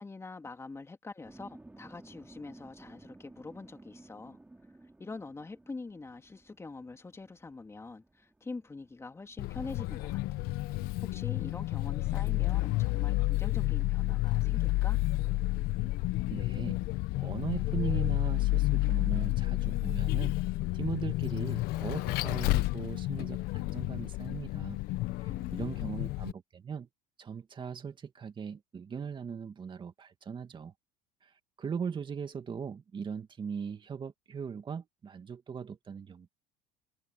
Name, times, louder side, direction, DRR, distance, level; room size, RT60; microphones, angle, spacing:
voice 1, 0.0-4.4 5.0-10.2 11.0-15.0 25.3-25.9, left 3 dB, 15° left, 2.9 m, -44 dB
sound 1, 1.2-20.2, right 2 dB, 10° right, 3.3 m, -58 dB
Vehicle, 9.4-26.3, left 18 dB, 65° left, 1.0 m, -30 dB
voice 2, 16.3-16.8 17.2-20.3 20.7-24.8 25.2-26.9 27.2-30.7 31.2-36.3, right 6 dB, 30° right, 2.2 m, -39 dB
supercardioid pair, 115°, 17 cm